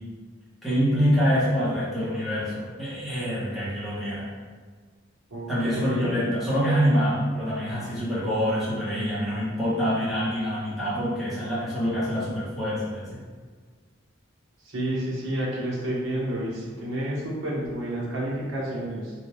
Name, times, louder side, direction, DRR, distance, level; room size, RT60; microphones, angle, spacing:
voice 1, 0.6-4.2 5.5-13.2, equal, ahead, -11 dB, 1.1 m, -25 dB
voice 2, 5.3-6.1 14.6-19.1, right 1 dB, 75° right, -5 dB, 1.1 m, -30 dB
3.4 x 2.7 x 3.1 m, 1.5 s
head